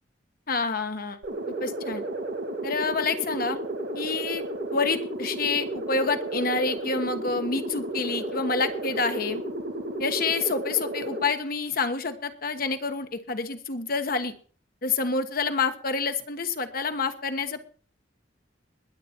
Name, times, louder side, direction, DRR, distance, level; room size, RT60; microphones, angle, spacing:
voice 1, 0.5-1.2 1.6-2.1 2.6-3.6 3.9-4.4 4.7-9.4 10.0-14.3 14.8-17.6, left 4 dB, 55° left, 8 dB, 1.3 m, -28 dB
sound 1, 1.2-11.2, right 1 dB, 65° right, 2.7 m, -33 dB
21.0 x 8.5 x 4.5 m, 0.41 s
head